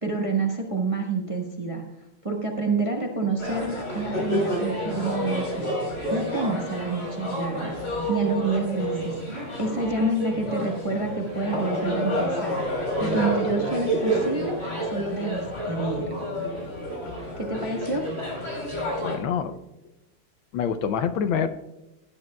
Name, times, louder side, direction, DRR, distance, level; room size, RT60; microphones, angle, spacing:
voice 1, 0.0-5.7 6.1-7.7 8.1-9.2 9.6-14.5 14.8-16.1 17.4-18.0, right 3 dB, 20° right, 1 dB, 1.0 m, -28 dB
sound 1, 3.4-19.2, equal, 35° left, 4.4 m, -29 dB
voice 2, 19.0-19.6 20.5-21.5, left 7 dB, 75° left, 10 dB, 1.4 m, -26 dB
16.5 x 9.8 x 2.3 m, 0.98 s
omnidirectional pair, 2.3 m